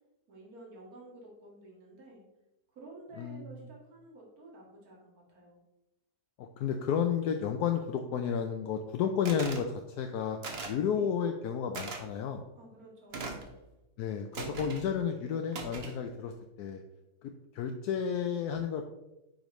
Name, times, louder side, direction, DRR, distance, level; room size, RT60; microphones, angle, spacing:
voice 1, 0.3-2.2 2.7-5.6 10.9-11.1 12.6-13.5, right 2 dB, 65° right, -3 dB, 2.3 m, -51 dB
voice 2, 3.2-3.6 6.4-10.4 10.6-12.4 14.0-16.8 17.2-18.9, left 7 dB, 80° left, 5 dB, 1.1 m, -32 dB
sound 1, 9.3-9.7 10.4-10.8 11.7-12.0 13.1-13.5 14.3-14.9 15.5-16.0, right 3 dB, 45° right, 1.1 m, -39 dB
9.2 x 5.1 x 3.1 m, 0.96 s
omnidirectional pair, 1.7 m